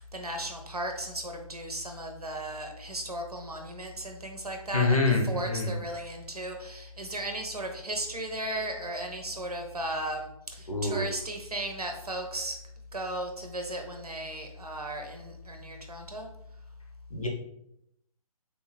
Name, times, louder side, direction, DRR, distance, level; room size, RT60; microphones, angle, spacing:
voice 1, 0.1-5.0 5.2-12.6 12.9-16.3, right 1 dB, 85° right, 4 dB, 0.6 m, -36 dB
voice 2, 4.7-5.7 10.7-11.1 17.1-17.3, left 3 dB, 65° left, 1 dB, 0.9 m, -26 dB
3.5 x 2.6 x 3.2 m, 0.78 s
figure-of-eight pair, 140°, 19 cm